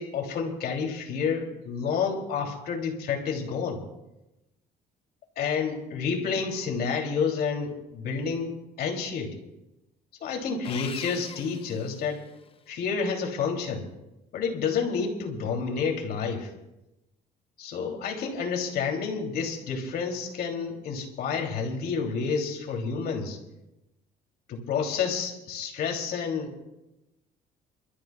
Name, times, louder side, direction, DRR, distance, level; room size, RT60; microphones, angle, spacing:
voice 1, 0.0-3.8 5.4-9.3 10.2-12.2 12.7-13.9 14.3-16.5 17.6-23.4 24.5-26.7, left 5 dB, 65° left, 2 dB, 2.9 m, -29 dB
Sawing, 10.6-12.5, left 6 dB, 35° left, 0.7 m, -42 dB
28.5 x 13.0 x 2.3 m, 0.95 s
cardioid pair, 110°, 17 cm